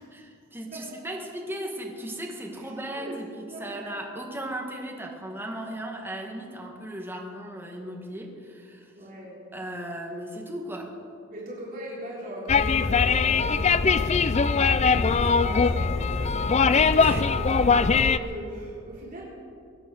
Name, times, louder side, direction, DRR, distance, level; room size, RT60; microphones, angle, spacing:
voice 1, 0.1-9.1 9.5-11.0 17.0-17.3, right 1 dB, 10° right, 0 dB, 2.0 m, -36 dB
voice 2, 2.6-3.8 8.9-9.5 11.3-19.2, right 1 dB, 45° right, -5 dB, 3.6 m, -39 dB
sound 1, 12.5-18.2, left 5 dB, 35° left, 0.4 m, -21 dB
23.0 x 8.9 x 6.4 m, 2.4 s
head